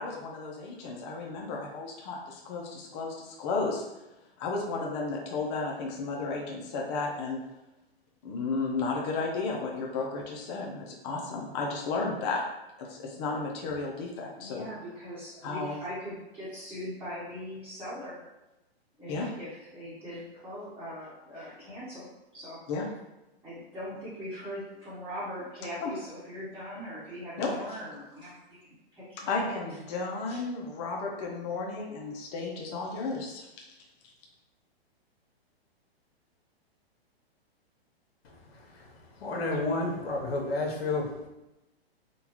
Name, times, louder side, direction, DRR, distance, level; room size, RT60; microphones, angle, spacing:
voice 1, 0.0-3.8 4.4-7.4 8.2-12.4 12.8-14.7 15.4-15.8 19.1-19.3 22.7-22.9 25.8-25.9 27.4-27.5 29.3-33.6, left 3 dB, 25° left, -1 dB, 0.5 m, -33 dB
voice 2, 14.4-18.2 19.0-22.1 22.3-22.6 23.4-28.6 28.9-29.5 30.3-30.4, equal, 5° right, -13 dB, 1.1 m, -41 dB
voice 3, 38.2-41.3, left 2 dB, 70° left, 0 dB, 1.0 m, -32 dB
3.7 x 2.2 x 2.9 m, 0.96 s
hypercardioid pair, 140°, 32 cm